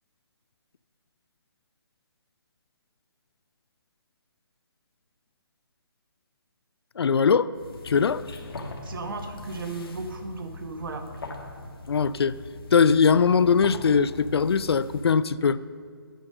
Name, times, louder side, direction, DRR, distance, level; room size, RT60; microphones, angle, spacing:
voice 1, 7.0-7.5 7.8-8.2 11.9-12.4 12.7-15.6, left 6 dB, 90° left, 17 dB, 0.4 m, -21 dB
sound 1, 7.5-15.2, left 2 dB, 70° left, 1.3 m, -41 dB
voice 2, 8.8-11.1, right 3 dB, 60° right, 6 dB, 1.1 m, -35 dB
8.9 x 6.6 x 6.4 m, 2.1 s
hypercardioid pair, 160°, 13 cm